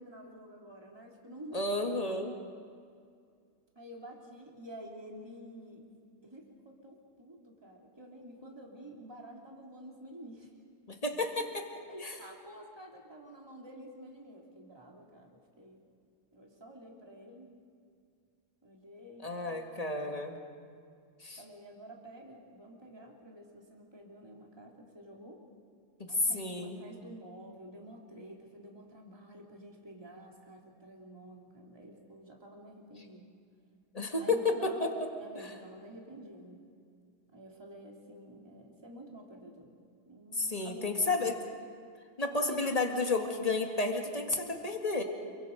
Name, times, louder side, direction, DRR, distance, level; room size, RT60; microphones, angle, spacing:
voice 1, 0.0-2.2 3.7-5.8 6.2-10.5 11.9-15.8 16.3-17.5 18.6-19.4 21.4-25.4 26.1-33.3 34.2-34.9 35.2-36.6 37.3-39.7 40.0-41.5 42.3-42.8, right 1 dB, 10° right, -1 dB, 2.8 m, -50 dB
voice 2, 1.5-2.3 10.9-11.7 12.0-12.2 19.2-20.4 21.2-21.4 26.0-26.1 26.3-26.8 33.9-34.9 40.4-41.3 42.2-45.0, left 3 dB, 20° left, 3 dB, 1.9 m, -32 dB
28.5 x 24.0 x 5.2 m, 2.3 s
omnidirectional pair, 2.4 m